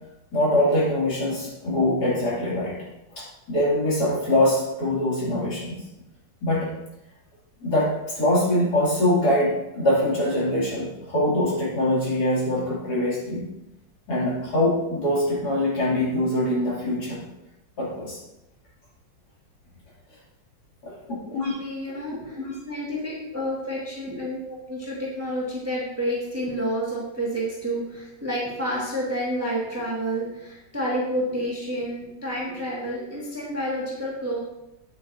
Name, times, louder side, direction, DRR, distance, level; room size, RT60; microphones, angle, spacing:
voice 1, 0.3-2.8 3.1-5.8 6.4-6.7 7.6-13.5 14.1-17.2 17.8-18.2 20.8-20.9 21.2-21.6, left 1 dB, 55° left, -7 dB, 3.4 m, -23 dB
voice 2, 21.3-34.4, equal, 10° right, -5 dB, 1.7 m, -29 dB
9.3 x 8.2 x 2.7 m, 0.90 s
omnidirectional pair, 2.1 m